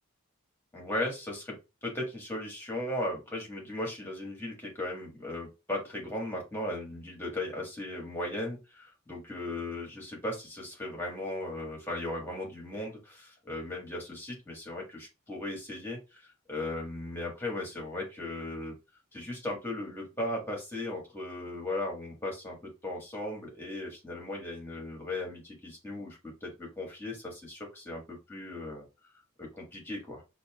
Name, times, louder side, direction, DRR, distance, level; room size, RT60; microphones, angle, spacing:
voice 1, 0.7-1.6 1.8-18.7 19.1-28.8 29.4-30.2, left 1 dB, 10° left, -1 dB, 1.4 m, -37 dB
5.4 x 2.7 x 2.3 m, 0.27 s
head